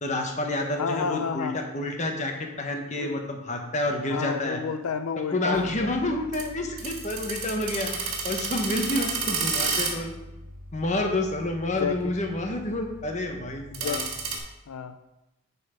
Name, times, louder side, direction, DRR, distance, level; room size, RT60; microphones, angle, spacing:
voice 1, 0.0-4.6 5.3-10.1 10.7-14.0, left 1 dB, 35° left, 3 dB, 1.0 m, -29 dB
voice 2, 0.8-1.6 3.0-3.2 4.0-6.0 9.0-9.2 11.8-12.2 13.7-14.1 14.7-15.0, left 6 dB, 85° left, 10 dB, 0.5 m, -31 dB
sound 1, 5.5-14.4, right 4 dB, 70° right, 1.9 m, -33 dB
9.9 x 4.2 x 5.0 m, 0.95 s
head